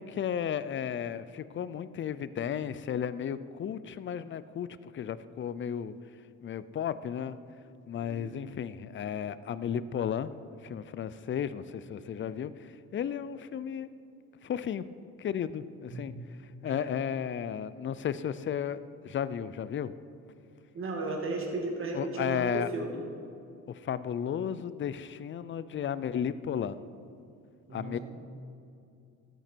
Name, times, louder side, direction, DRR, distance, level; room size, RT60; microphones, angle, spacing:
voice 1, 0.0-6.0 6.4-7.4 7.9-10.3 10.6-13.9 14.4-14.8 15.2-16.1 16.6-19.9 21.9-22.7 23.7-26.8 27.7-28.0, left 8 dB, 40° left, 15 dB, 0.5 m, -34 dB
voice 2, 20.7-23.0 27.7-28.0, right 3 dB, 45° right, 0 dB, 2.1 m, -35 dB
13.5 x 9.1 x 4.5 m, 2.4 s
cardioid pair, 90°, 30 cm